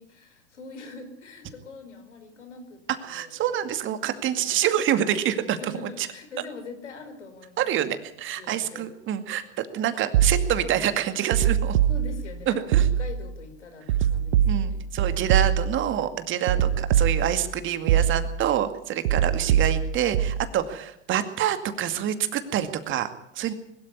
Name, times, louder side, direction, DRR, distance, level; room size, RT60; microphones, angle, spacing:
voice 1, 0.0-2.8 3.1-3.5 4.3-4.8 5.6-7.9 8.3-8.9 11.9-14.9, left 3 dB, 90° left, 8 dB, 5.1 m, -43 dB
voice 2, 3.0-5.6 6.0-6.1 7.6-11.8 12.5-12.9 14.4-23.5, right 10 dB, 35° right, 10 dB, 2.3 m, -27 dB
sound 1, 10.1-10.8 11.3-12.4 12.7-13.3 13.9-15.9 16.5-17.5 17.9-18.5 19.0-20.5, right 9 dB, 65° right, 1.4 m, -23 dB
21.5 x 13.0 x 9.8 m, 0.74 s
hypercardioid pair, 115°, 34 cm